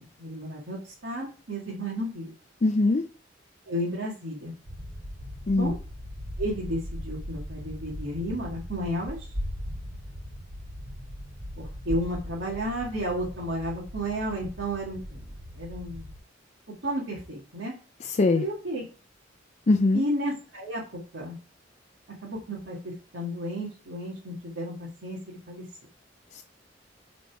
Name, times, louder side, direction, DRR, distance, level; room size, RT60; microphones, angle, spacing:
voice 1, 0.2-2.3 3.7-4.5 5.5-5.8 6.4-9.3 11.6-15.2 15.5-16.1 16.8-17.7 18.4-18.8 19.9-20.8 21.1-21.4 22.2-25.7, equal, 85° right, 1.9 m, -32 dB
voice 2, 2.6-3.0 5.5-5.7 18.1-18.4 19.7-20.0 26.3-26.4, left 2 dB, 35° left, 0.5 m, -22 dB
sound 1, 4.7-16.2, equal, 65° right, 2.5 m, -39 dB
8.7 x 4.2 x 4.6 m
head